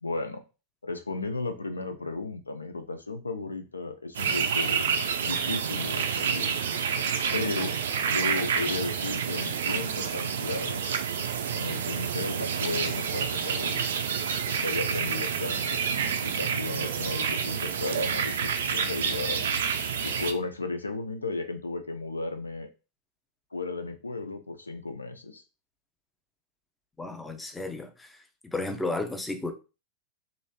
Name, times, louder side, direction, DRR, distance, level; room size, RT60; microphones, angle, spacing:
voice 1, 0.0-0.4 0.8-4.8 5.2-6.6 7.3-10.8 11.5-13.8 14.4-15.8 16.2-19.7 20.0-22.7 23.5-25.4, left 3 dB, 80° left, 0.3 m, -34 dB
sound 1, 4.1-20.3, right 7 dB, 65° right, 0.3 m, -29 dB
voice 2, 27.0-28.2 28.5-29.5, left 2 dB, 10° left, 0.4 m, -33 dB
3.0 x 2.5 x 2.2 m
figure-of-eight pair, 90°, 0 cm